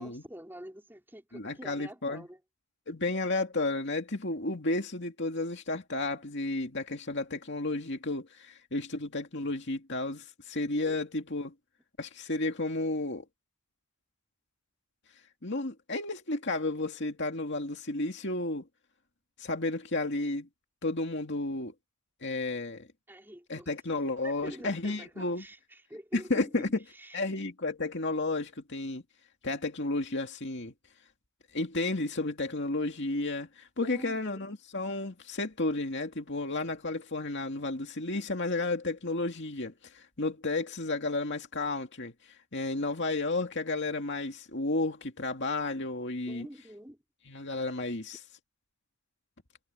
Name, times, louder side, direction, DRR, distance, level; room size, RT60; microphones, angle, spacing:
voice 1, 0.0-2.4 10.7-11.0 23.1-23.7 24.2-27.2 33.8-34.5 46.3-47.0, equal, 10° right, 5.0 m, -47 dB
voice 2, 1.3-2.2 2.9-11.5 12.0-13.2 15.4-18.6 19.4-20.5 20.8-21.7 22.2-22.9 23.5-25.4 26.1-26.7 27.1-29.0 29.4-30.7 31.5-46.5 47.3-48.2, left 2 dB, 55° left, 2.4 m, -32 dB
head